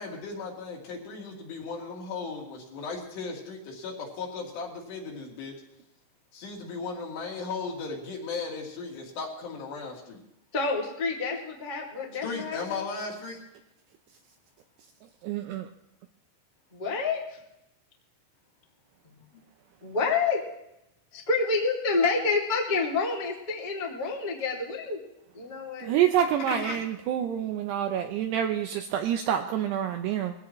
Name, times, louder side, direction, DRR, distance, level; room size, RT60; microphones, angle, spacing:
voice 1, 0.0-5.5 6.3-10.2 12.2-13.4 19.3-19.4 26.4-26.9, left 4 dB, 65° left, -1 dB, 4.4 m, -36 dB
voice 2, 10.5-12.8 16.7-17.4 19.0-19.2 19.8-20.4 21.1-25.0 25.3-25.9, left 4 dB, 20° left, -3 dB, 1.2 m, -28 dB
voice 3, 15.2-15.7 25.8-30.3, right 10 dB, 80° right, 6 dB, 2.5 m, -27 dB
21.5 x 16.5 x 3.1 m, 0.84 s
omnidirectional pair, 5.5 m